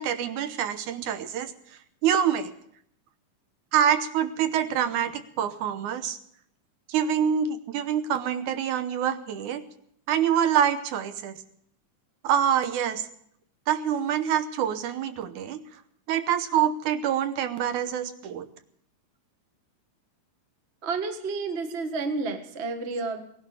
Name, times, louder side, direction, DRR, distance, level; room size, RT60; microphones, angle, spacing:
voice 1, 0.0-1.5 2.0-2.5 3.7-6.2 6.9-9.6 10.1-11.4 12.2-13.0 13.7-15.6 16.1-18.5, right 9 dB, 75° right, 10 dB, 2.4 m, -26 dB
voice 2, 20.8-23.2, right 4 dB, 35° right, 5 dB, 1.1 m, -30 dB
18.0 x 11.0 x 7.1 m, 0.68 s
omnidirectional pair, 3.6 m